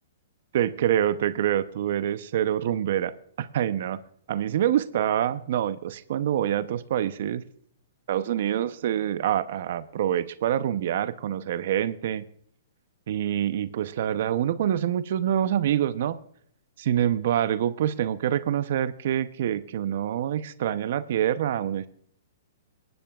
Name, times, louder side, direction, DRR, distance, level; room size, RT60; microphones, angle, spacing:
voice 1, 0.5-3.1 3.4-4.0 4.3-7.4 8.1-12.2 13.1-16.2 16.8-21.9, right 10 dB, 60° right, 13 dB, 0.7 m, -26 dB
21.5 x 10.5 x 2.4 m, 0.63 s
hypercardioid pair, 135°, 0 cm